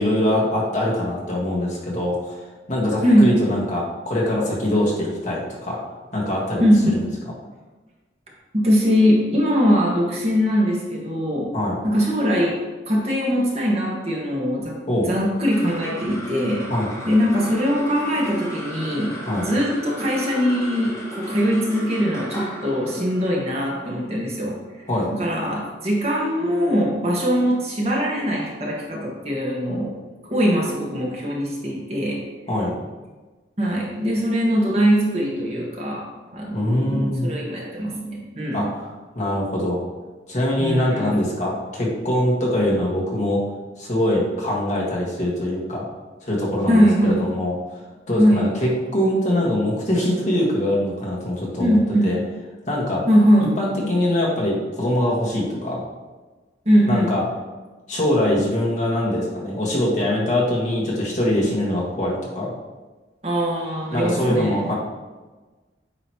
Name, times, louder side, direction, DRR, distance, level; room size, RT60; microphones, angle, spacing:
voice 1, 0.0-2.4 2.7-5.8 6.1-7.0 11.5-11.8 14.9-15.1 16.7-16.9 19.2-19.5 24.9-25.1 32.5-32.8 36.5-37.3 38.5-38.8 39.1-39.8 40.3-43.4 43.8-45.8 46.2-47.5 48.1-51.8 52.0-52.2 52.7-53.0 53.6-55.8 56.9-57.2 57.9-62.5 63.9-64.7, left 1 dB, 40° left, -4 dB, 1.5 m, -23 dB
voice 2, 8.5-11.5 11.8-14.8 15.0-16.6 17.0-19.1 19.4-30.0 30.3-32.2 33.6-38.7 40.6-41.1 46.7-47.3 48.2-48.4 51.6-52.1 53.1-53.5 56.6-57.1 63.2-64.7, equal, 35° right, -3 dB, 1.3 m, -21 dB
sound 1, 15.3-25.9, equal, 15° left, 1.1 m, -36 dB
8.7 x 3.0 x 4.4 m, 1.3 s
head